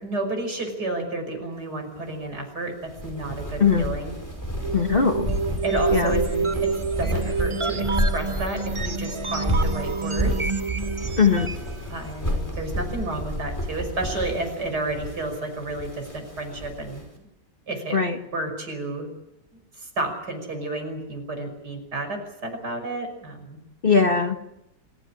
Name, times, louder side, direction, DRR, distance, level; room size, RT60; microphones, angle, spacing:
voice 1, 0.0-4.1 5.6-6.7 7.0-10.4 11.9-17.3 17.7-18.0 18.3-19.1 19.8-23.6, right 2 dB, 70° right, 5 dB, 6.3 m, -31 dB
sound 1, 2.8-17.0, equal, 10° left, 5.1 m, -30 dB
sound 2, 4.6-11.7, right 4 dB, 30° right, 0.6 m, -28 dB
voice 2, 4.7-5.3 5.9-6.1 11.2-11.5 17.9-18.1 23.8-24.4, left 5 dB, 35° left, 5 dB, 1.7 m, -19 dB
27.0 x 15.0 x 9.9 m, 0.86 s
omnidirectional pair, 1.9 m